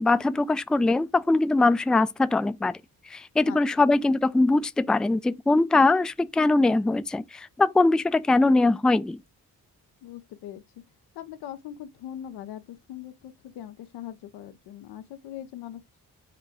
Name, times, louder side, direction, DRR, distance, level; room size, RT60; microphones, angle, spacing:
voice 1, 0.0-2.7 3.1-9.2, left 2 dB, ahead, 0.3 m, -22 dB
voice 2, 3.4-3.9 10.0-10.6 11.1-15.8, left 11 dB, 90° left, 0.6 m, -41 dB
4.8 x 2.3 x 4.8 m
supercardioid pair, 40°, 39 cm